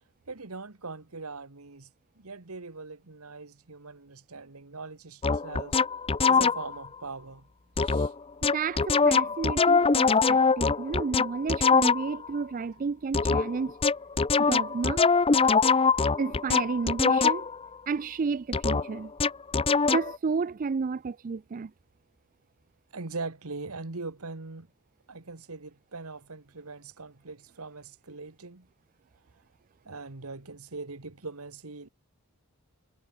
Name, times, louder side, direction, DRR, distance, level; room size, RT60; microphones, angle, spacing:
voice 1, 0.3-1.9 2.2-5.8 6.2-7.5 7.8-8.1 22.9-24.7 25.1-28.7 29.8-31.9, right 3 dB, 80° right, 1.6 m, -41 dB
sound 1, 5.2-6.8 7.8-8.1 8.4-12.3 13.1-17.6 18.5-20.2, left 5 dB, 25° left, 0.6 m, -23 dB
voice 2, 8.5-13.8 14.4-15.1 16.2-17.5 17.9-19.1 19.9-21.7, right 5 dB, 40° right, 0.4 m, -31 dB
head